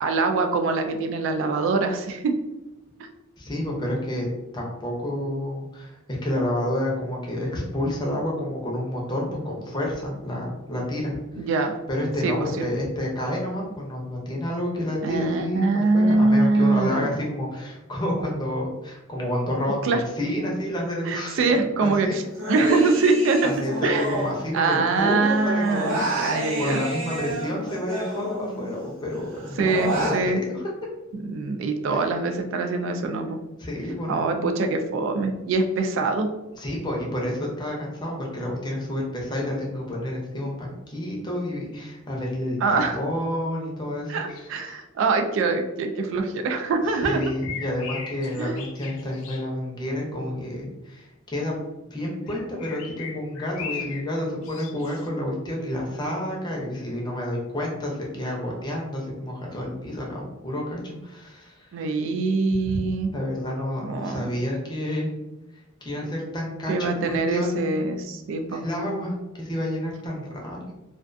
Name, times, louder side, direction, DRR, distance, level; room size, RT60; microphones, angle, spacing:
voice 1, 0.0-2.3 11.4-11.7 12.2-12.6 15.0-17.1 19.8-20.0 21.1-22.2 22.5-23.5 23.8-24.1 24.5-26.8 29.6-30.4 31.1-33.4 34.1-36.3 42.6-43.0 44.1-47.2 48.3-48.6 61.7-63.1 63.8-64.3 66.7-68.6, right 3 dB, 65° right, 5 dB, 0.3 m, -23 dB
voice 2, 3.4-4.3 4.5-11.5 11.9-21.4 21.8-22.2 23.4-30.7 31.9-32.1 32.9-33.0 33.6-34.4 36.6-44.5 46.8-51.5 51.9-61.7 62.6-62.8 63.1-65.1 65.8-68.1 68.4-70.7, left 1 dB, 20° left, -2 dB, 0.6 m, -29 dB
Human voice, 22.3-25.0 25.2-28.7 29.1-30.2, right 1 dB, 90° right, 1.0 m, -30 dB
sound 1, 44.3-44.8 47.0-49.5 52.3-54.1 54.4-55.1, left 6 dB, 80° left, 0.4 m, -39 dB
2.3 x 2.3 x 2.5 m, 1.0 s
head